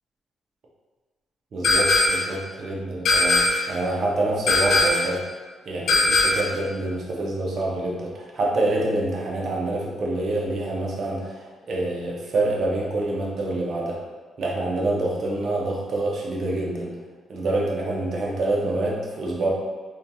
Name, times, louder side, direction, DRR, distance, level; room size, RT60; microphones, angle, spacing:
voice 1, 1.5-5.2 5.7-14.0 14.4-17.0 17.3-19.5, right 2 dB, 50° right, -3 dB, 0.5 m, -26 dB
sound 1, 1.6-2.4 3.1-3.8 4.5-5.2 5.9-6.6, left 2 dB, 55° left, 0.3 m, -20 dB
2.7 x 2.2 x 2.6 m, 1.4 s
cardioid pair, 140°, 0 cm